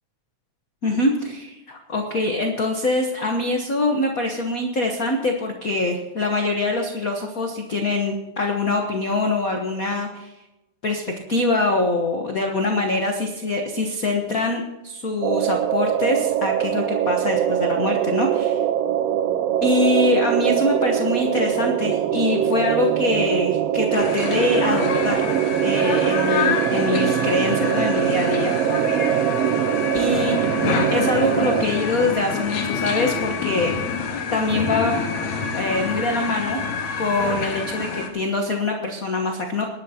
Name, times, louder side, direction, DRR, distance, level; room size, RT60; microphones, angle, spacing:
voice 1, 0.8-10.3 10.8-11.0 11.3-18.6 19.6-25.3 25.6-28.5 29.9-30.4 30.9-33.7 34.3-34.9 35.5-36.6 37.0-39.6, left 2 dB, 50° left, 2 dB, 1.0 m, -24 dB
sound 1, 15.2-31.7, right 11 dB, 80° right, 1.5 m, -22 dB
sound 2, 23.9-38.1, left 5 dB, 75° left, 2.6 m, -27 dB
21.5 x 11.5 x 2.9 m, 1.0 s
omnidirectional pair, 3.3 m